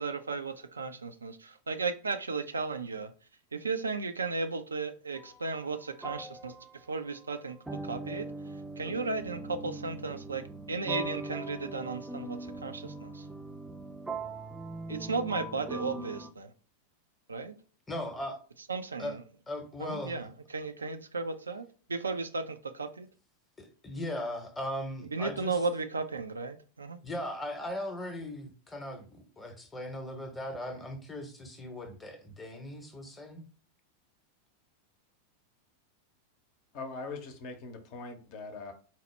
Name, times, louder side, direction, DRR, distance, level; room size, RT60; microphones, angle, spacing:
voice 1, 0.0-3.1 3.5-6.5 6.9-7.6 7.8-8.3 8.8-10.4 10.7-13.3 14.9-16.5 17.3-17.5 18.7-19.2 19.8-23.1 25.1-27.0, right 4 dB, 75° right, 0.3 m, -35 dB
sound 1, 5.2-5.4 6.0-16.3, right 2 dB, 10° right, 0.4 m, -41 dB
voice 2, 17.9-18.4 19.0-19.2 19.5-20.3 23.6-25.6 27.0-33.4, left 1 dB, 10° left, 0.8 m, -38 dB
voice 3, 36.7-38.7, left 3 dB, 45° left, 0.6 m, -41 dB
4.1 x 2.0 x 3.2 m
figure-of-eight pair, 90°, 0 cm